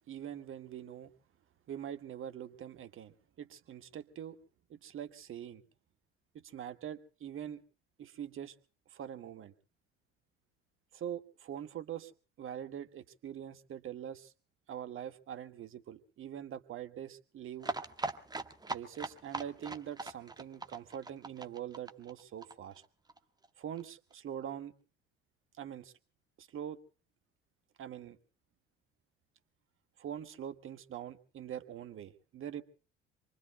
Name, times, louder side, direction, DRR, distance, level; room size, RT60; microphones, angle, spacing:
voice 1, 0.1-1.1 1.7-4.4 4.7-5.6 6.3-7.6 8.0-8.6 8.9-9.5 10.9-12.1 12.4-14.3 14.7-17.7 18.7-22.8 23.6-24.7 25.6-25.9 26.4-26.8 27.8-28.2 30.0-32.6, right 10 dB, 45° right, 10 dB, 1.7 m, -43 dB
sound 1, 17.6-23.2 23.4-23.5 23.8-23.9 24.1-24.2, right 3 dB, 15° right, 1.5 m, -40 dB
27.0 x 23.5 x 2.2 m, 0.38 s
figure-of-eight pair, 60°, 29 cm